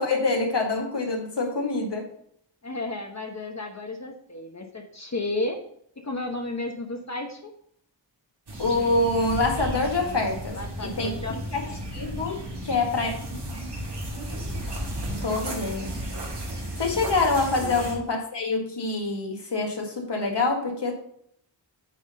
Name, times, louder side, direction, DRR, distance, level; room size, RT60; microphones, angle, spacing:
voice 1, 0.0-2.1 8.6-11.6 11.9-13.1 15.1-15.9 16.8-20.9, left 3 dB, 65° left, 1 dB, 1.8 m, -26 dB
voice 2, 2.6-5.6 6.0-7.5 10.5-11.4 11.6-11.8 17.6-17.9, left 2 dB, 35° left, 3 dB, 1.1 m, -33 dB
sound 1, 8.5-17.9, equal, 65° right, 2.1 m, -34 dB
8.4 x 3.7 x 5.5 m, 0.67 s
wide cardioid pair, 60°, 45 cm